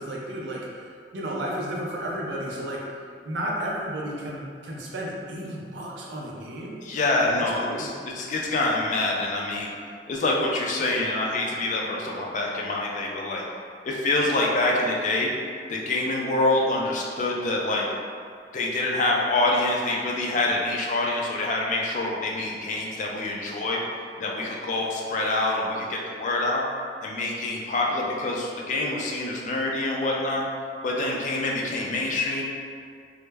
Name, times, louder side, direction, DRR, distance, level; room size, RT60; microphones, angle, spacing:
voice 1, 0.0-3.0 3.2-6.8 7.2-7.9, right 1 dB, 90° right, -3 dB, 0.5 m, -33 dB
voice 2, 6.8-9.7 10.1-13.4 13.8-15.3 15.7-17.9 18.5-23.8 24.2-26.6 27.0-30.4 30.8-32.4, left 2 dB, 45° left, -2 dB, 0.3 m, -26 dB
2.1 x 2.0 x 3.2 m, 2.2 s
head